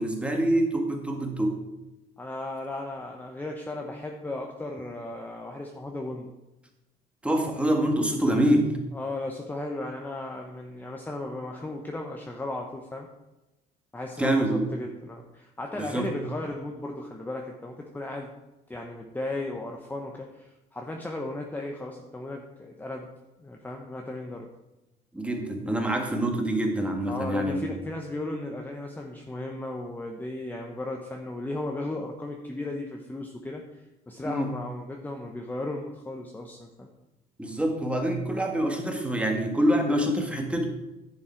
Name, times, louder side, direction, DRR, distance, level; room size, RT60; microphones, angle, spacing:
voice 1, 0.0-1.6 7.2-8.7 14.2-14.7 15.8-16.1 25.1-27.8 34.3-34.5 37.4-40.6, right 1 dB, 5° right, 2 dB, 1.8 m, -25 dB
voice 2, 2.2-6.3 8.9-13.1 13.9-18.3 18.7-23.1 23.4-24.5 27.1-36.9 40.6-40.7, left 2 dB, 10° left, 1 dB, 1.0 m, -36 dB
10.5 x 7.1 x 4.5 m, 0.99 s
cardioid pair, 110°, 17 cm